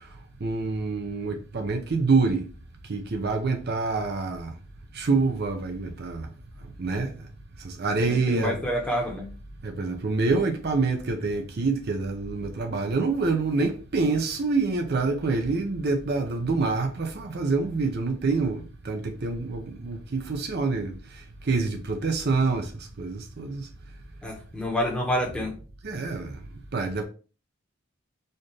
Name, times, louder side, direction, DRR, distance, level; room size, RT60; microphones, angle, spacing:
voice 1, 0.4-2.4 2.9-4.5 4.9-6.3 6.8-7.3 7.6-8.6 9.6-23.7 25.8-26.4 26.7-27.0, right 3 dB, 50° right, 0.5 m, -26 dB
voice 2, 8.0-9.3 24.2-25.5, left 1 dB, 5° left, 0.9 m, -28 dB
4.2 x 2.5 x 3.2 m
head